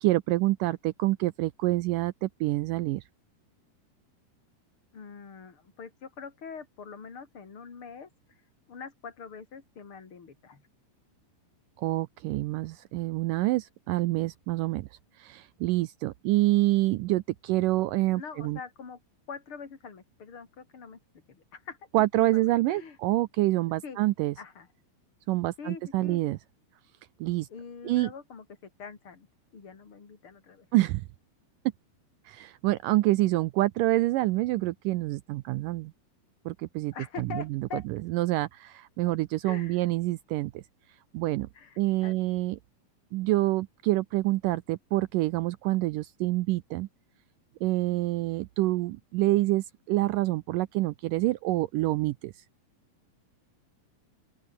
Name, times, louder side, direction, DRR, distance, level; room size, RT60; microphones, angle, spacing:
voice 1, 0.0-3.0 11.8-14.9 15.2-18.6 21.9-24.3 25.3-26.4 27.2-27.5 27.9-28.1 30.7-31.0 32.3-35.9 36.5-36.9 37.2-37.8 38.1-40.6 41.1-41.5 41.8-42.6 43.1-46.9 47.6-52.3, right 18 dB, 85° right, 1.9 m, -27 dB
voice 2, 4.9-8.1 8.7-10.6 18.1-19.0 19.3-21.0 21.3-21.8 22.2-23.0 23.8-24.0 24.4-24.7 25.6-26.2 27.5-29.3 29.5-30.7 36.9-37.9 39.0-39.1 39.4-39.8 41.5-42.2, left 6 dB, 35° left, 4.1 m, -44 dB
open air
omnidirectional pair, 4.4 m